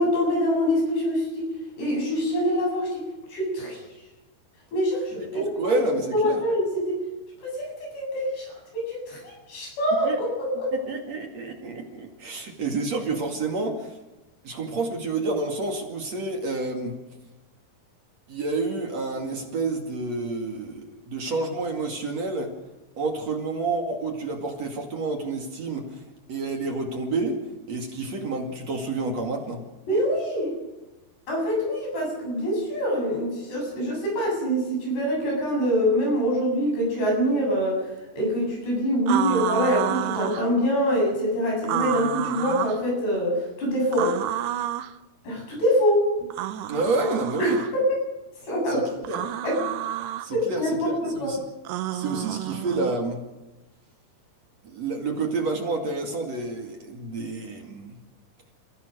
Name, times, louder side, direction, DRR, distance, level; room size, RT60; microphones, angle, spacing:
voice 1, 0.0-1.5 1.8-3.0 3.3-3.8 4.7-7.0 7.4-8.5 8.7-10.8 29.9-30.5 31.3-37.8 38.1-44.1 45.2-46.1 47.4-47.8 48.5-48.8 49.4-49.6 50.3-50.9 51.2-51.3, equal, 80° left, -1 dB, 10.0 m, -25 dB
voice 2, 5.1-6.4 10.0-10.2 10.7-14.0 14.4-17.0 18.3-22.5 23.0-26.0 26.3-27.4 27.7-29.6 46.7-47.6 48.7-48.8 49.1-49.2 50.2-51.4 51.9-53.2 54.6-58.0, right 3 dB, 45° right, 2 dB, 3.1 m, -29 dB
sound 1, 39.1-40.5 41.6-42.8 43.9-44.9 46.3-47.7 49.0-50.3 51.6-53.0, right 12 dB, 90° right, 3.0 m, -29 dB
29.5 x 16.0 x 6.4 m, 1.1 s
omnidirectional pair, 4.7 m